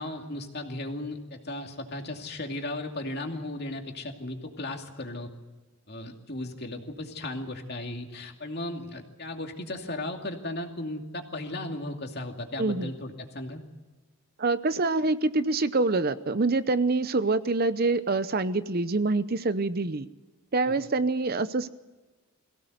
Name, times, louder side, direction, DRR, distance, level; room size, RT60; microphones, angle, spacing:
voice 1, 0.0-5.3 5.9-13.6 20.6-20.8, left 1 dB, 45° left, 3 dB, 2.5 m, -36 dB
voice 2, 12.6-12.9 14.4-20.1 20.5-21.7, right 3 dB, 45° right, 13 dB, 0.7 m, -26 dB
23.0 x 16.5 x 7.9 m, 1.2 s
head